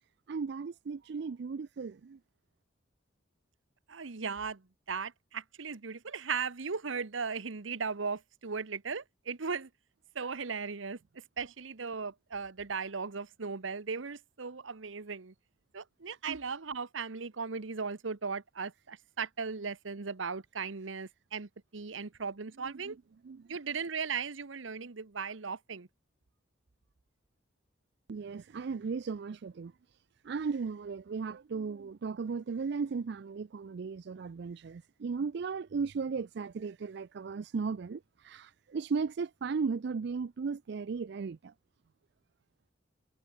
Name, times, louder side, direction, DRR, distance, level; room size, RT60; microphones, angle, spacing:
voice 1, 0.3-2.2 16.3-16.4 22.6-22.9 23.2-23.5 28.1-29.7 30.2-41.5, right 5 dB, 55° right, 0.4 m, -36 dB
voice 2, 3.9-4.6 4.9-9.7 10.1-11.0 11.4-15.3 15.7-23.0 23.5-25.9, right 5 dB, 75° right, 1.0 m, -37 dB
head